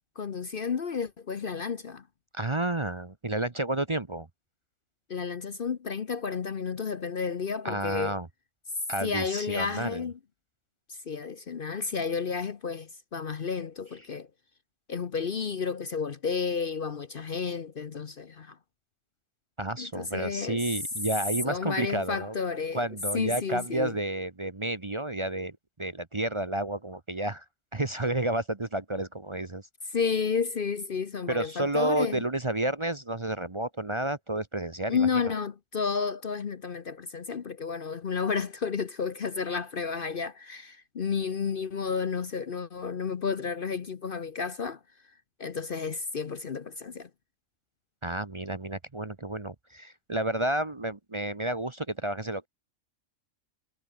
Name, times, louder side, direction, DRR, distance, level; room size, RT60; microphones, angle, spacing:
voice 1, 0.2-2.0 5.1-8.2 9.0-10.2 10.9-14.3 14.9-18.6 19.8-20.6 21.4-22.8 23.1-24.0 29.9-32.2 34.9-44.8 45.4-47.1, left 5 dB, 45° left, 1.0 m, -31 dB
voice 2, 2.3-4.3 7.6-8.3 8.9-10.1 19.6-22.4 22.7-27.4 27.7-29.6 31.3-35.3 48.0-52.5, right 1 dB, 25° right, 1.0 m, -31 dB
omnidirectional pair, 1.4 m